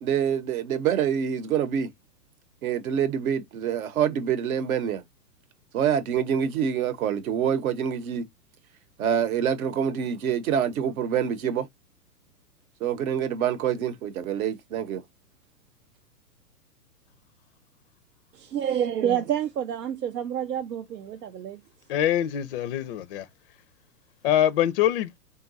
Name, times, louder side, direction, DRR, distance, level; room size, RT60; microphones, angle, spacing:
voice 1, 0.0-1.9 2.6-5.0 5.7-8.2 9.0-11.7 12.8-15.0, right 8 dB, 60° right, 0.9 m, -26 dB
voice 2, 18.3-21.6, right 9 dB, 85° right, 0.7 m, -28 dB
voice 3, 21.9-23.2 24.2-25.1, left 11 dB, 40° left, 0.4 m, -24 dB
3.8 x 2.3 x 3.9 m
hypercardioid pair, 130°, 47 cm